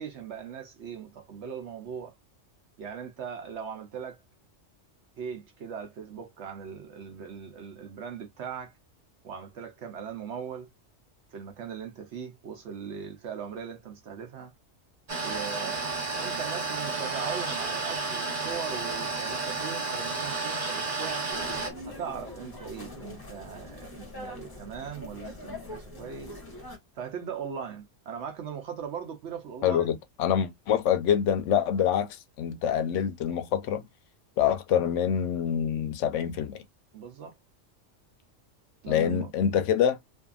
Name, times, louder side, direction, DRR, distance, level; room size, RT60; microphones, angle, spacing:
voice 1, 0.0-2.1 2.8-4.2 5.2-8.7 9.2-10.7 11.3-14.5 15.2-15.9 16.2-21.3 21.9-26.4 26.9-30.0 36.9-37.4 38.8-39.3, right 7 dB, 70° right, 1.0 m, -39 dB
sound 1, 15.1-21.7, right 3 dB, 40° right, 0.8 m, -31 dB
sound 2, 21.3-26.8, left 2 dB, 20° left, 0.8 m, -43 dB
voice 2, 29.6-33.8 34.4-36.6 38.9-40.0, left 9 dB, 80° left, 0.9 m, -26 dB
2.7 x 2.5 x 2.3 m
omnidirectional pair, 1.3 m